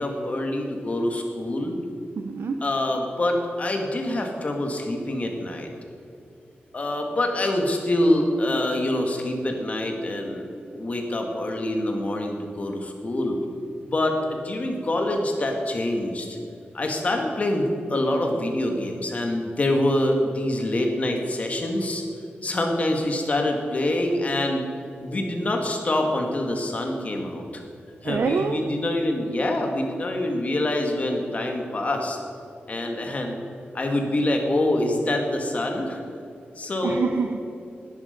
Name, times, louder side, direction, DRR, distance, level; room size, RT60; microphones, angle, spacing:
voice 1, 0.0-1.8 2.6-5.7 6.7-10.5 10.7-13.4 13.8-16.4 16.7-22.0 22.4-24.7 25.0-27.6 28.0-32.2 32.7-33.4 33.7-36.0 36.6-37.1, left 1 dB, 40° left, 2 dB, 2.1 m, -25 dB
voice 2, 2.2-2.6 28.0-28.6 36.8-37.4, right 5 dB, 80° right, 5 dB, 0.8 m, -26 dB
19.5 x 11.5 x 5.3 m, 2.5 s
wide cardioid pair, 165°, 4 cm